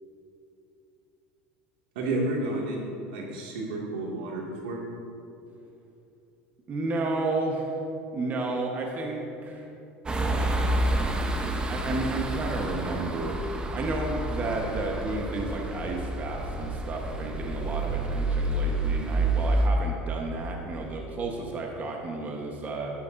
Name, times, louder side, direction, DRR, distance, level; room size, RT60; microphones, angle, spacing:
voice 1, 2.0-2.8 3.1-4.8, right 2 dB, 85° right, -2 dB, 2.2 m, -31 dB
voice 2, 6.7-7.8 8.1-9.7 11.7-13.4 13.7-22.9, right 2 dB, 35° right, 0 dB, 1.2 m, -32 dB
sound 1, 10.1-19.7, right 2 dB, 15° right, 0.9 m, -29 dB
12.0 x 10.0 x 2.7 m, 2.7 s
supercardioid pair, 110°, 5 cm